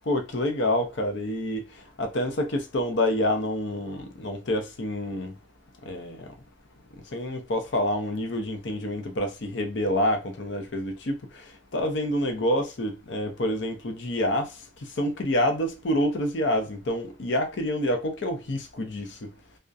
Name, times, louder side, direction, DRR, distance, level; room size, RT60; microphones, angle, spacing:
voice 1, 0.1-1.7 2.0-5.3 5.8-6.3 7.1-11.5 11.7-14.5 15.0-19.3, left 1 dB, 70° left, 0.6 m, -27 dB
2.3 x 2.1 x 2.6 m
head